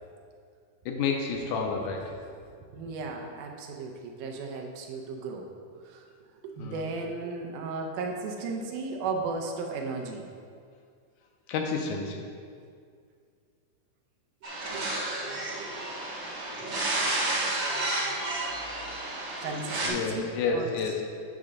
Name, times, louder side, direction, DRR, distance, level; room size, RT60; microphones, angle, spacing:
voice 1, 0.9-2.1 6.6-6.9 11.5-12.3 19.8-21.0, left 5 dB, 80° left, 2 dB, 2.0 m, -30 dB
voice 2, 2.7-5.5 5.8-6.0 6.4-10.3 14.7-15.2 19.4-20.2 20.5-20.7, right 4 dB, 75° right, 2 dB, 2.2 m, -35 dB
sound 1, 14.4-19.9, right 2 dB, 45° right, 1.3 m, -31 dB
8.7 x 3.7 x 6.5 m, 2.2 s
omnidirectional pair, 3.9 m